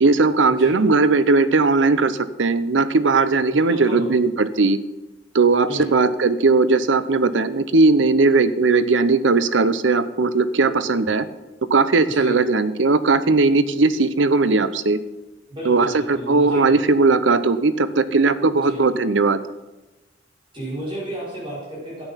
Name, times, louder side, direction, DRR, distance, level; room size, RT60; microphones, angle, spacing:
voice 1, 0.0-4.8 5.3-11.3 11.7-15.0 15.7-15.9 16.3-19.4, right 3 dB, 85° right, 13 dB, 0.7 m, -18 dB
voice 2, 3.6-4.1 5.7-5.9 12.1-12.4 15.5-16.8 18.6-18.8 20.5-22.1, right 1 dB, 30° right, -7 dB, 5.2 m, -32 dB
12.5 x 9.1 x 5.7 m, 1.1 s
head